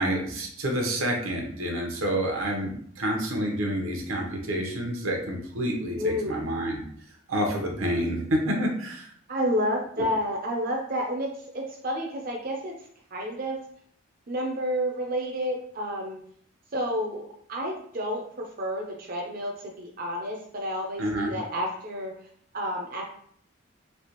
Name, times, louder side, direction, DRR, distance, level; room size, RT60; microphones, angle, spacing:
voice 1, 0.0-6.8 7.3-9.1 10.0-10.1 21.0-21.3, right 1 dB, 85° right, 1 dB, 0.9 m, -28 dB
voice 2, 6.0-6.4 9.3-12.7 13.1-13.6 14.3-16.2 16.7-22.1 22.5-23.0, equal, 45° right, -1 dB, 0.4 m, -30 dB
3.3 x 2.8 x 2.9 m, 0.63 s
head